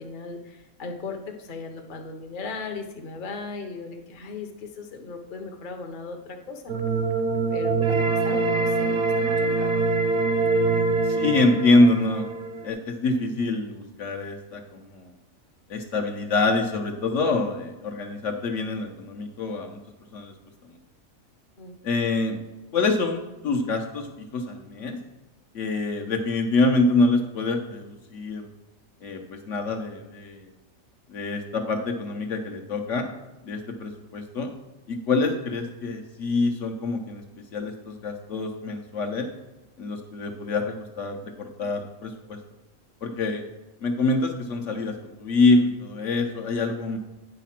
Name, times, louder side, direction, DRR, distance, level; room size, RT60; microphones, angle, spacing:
voice 1, 0.0-6.7 7.5-9.8 21.6-21.8, left 4 dB, 40° left, 3 dB, 0.9 m, -37 dB
sound 1, 6.7-12.7, right 3 dB, 60° right, 0.9 m, -24 dB
voice 2, 10.7-12.2 12.6-15.1 15.7-19.8 20.1-20.3 21.8-22.4 22.7-25.0 25.5-28.5 29.0-30.5 31.1-33.1 33.4-34.5 34.9-37.2 37.5-39.3 39.8-42.4 43.0-43.4 43.8-47.0, left 2 dB, 65° left, 3 dB, 1.1 m, -25 dB
9.2 x 4.1 x 5.9 m, 1.1 s
omnidirectional pair, 1.4 m